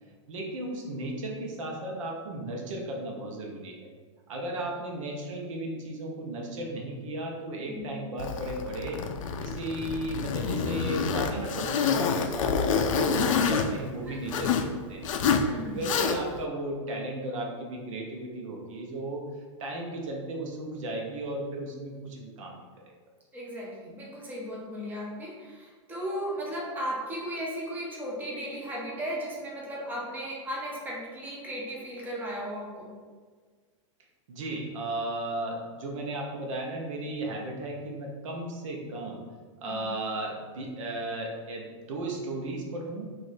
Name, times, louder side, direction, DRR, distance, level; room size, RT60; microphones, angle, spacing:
voice 1, 0.3-3.9 4.3-9.0 9.4-15.1 15.7-19.2 19.6-22.7 34.3-39.2 39.6-43.1, right 1 dB, 80° right, 0 dB, 0.8 m, -35 dB
Zipper (clothing), 8.2-14.7 15.0-15.5 15.8-16.4, left 6 dB, 80° left, 0.4 m, -27 dB
voice 2, 15.4-15.9 23.3-32.9 39.6-39.9, equal, 10° right, -5 dB, 0.8 m, -36 dB
2.9 x 2.5 x 4.1 m, 1.5 s
supercardioid pair, 140°, 16 cm